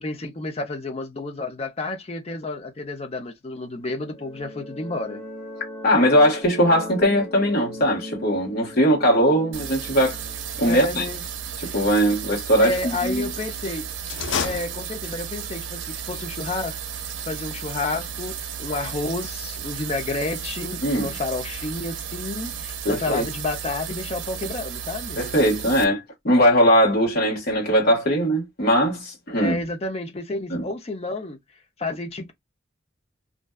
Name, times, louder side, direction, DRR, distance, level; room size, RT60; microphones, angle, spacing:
voice 1, 0.0-5.2 10.6-11.2 11.6-11.8 12.6-13.9 14.4-25.2 29.4-31.4 31.8-32.3, left 2 dB, 35° left, 0.5 m, -30 dB
sound 1, 3.8-12.4, equal, 5° left, 0.9 m, -39 dB
voice 2, 5.8-10.2 10.6-11.0 11.6-13.3 20.8-21.1 22.8-23.2 25.2-29.6 30.5-30.6, equal, 55° left, 1.3 m, -20 dB
sound 2, 9.5-25.8, right 8 dB, 80° right, 0.5 m, -34 dB
sound 3, 14.0-15.4, left 5 dB, 85° left, 0.5 m, -29 dB
2.5 x 2.2 x 2.2 m
head